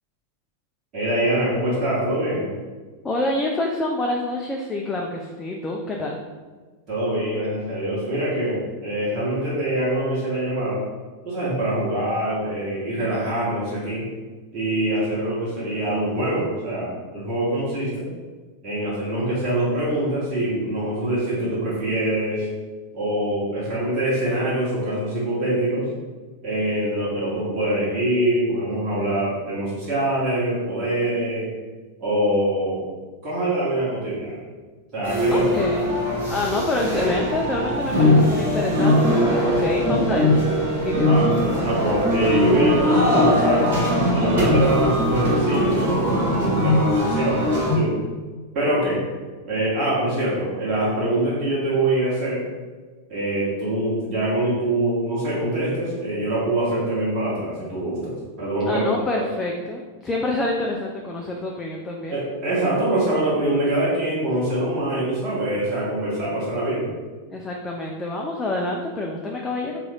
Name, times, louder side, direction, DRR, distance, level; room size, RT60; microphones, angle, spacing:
voice 1, 0.9-2.5 6.9-10.8 11.2-14.1 14.5-18.0 18.6-22.5 22.9-25.9 26.4-31.5 32.0-32.8 33.2-34.4 34.9-35.5 41.0-43.7 44.1-48.0 48.5-49.0 49.4-52.4 53.1-58.8 59.1-59.2 62.1-66.9, right 1 dB, 35° right, -9 dB, 1.2 m, -24 dB
voice 2, 3.0-6.2 35.3-36.0 36.3-39.1 39.4-40.4 40.8-41.1 58.7-62.2 67.3-69.8, left 2 dB, 15° left, -1 dB, 0.4 m, -27 dB
sound 1, 35.0-47.7, left 1 dB, 55° right, 1.1 m, -20 dB
3.6 x 2.5 x 3.3 m, 1.4 s
figure-of-eight pair, 90°, 0 cm